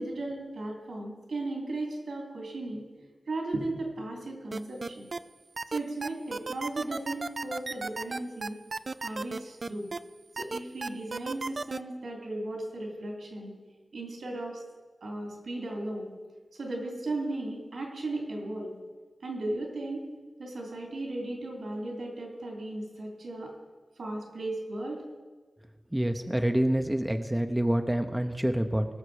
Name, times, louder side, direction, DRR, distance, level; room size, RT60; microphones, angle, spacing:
voice 1, 0.0-5.1 5.7-8.6 9.0-9.9 10.3-13.5 13.9-14.6 15.0-16.1 16.5-18.7 19.2-20.0 20.4-23.5 24.0-25.0, right 2 dB, 85° right, 0 dB, 3.1 m, -36 dB
sound 1, 4.5-5.2 5.6-10.0 10.4-11.8, right 3 dB, 60° right, 0.4 m, -34 dB
voice 2, 25.9-28.9, right 1 dB, 15° right, 5 dB, 0.8 m, -27 dB
19.0 x 6.6 x 4.9 m, 1.3 s
cardioid pair, 45°, 0 cm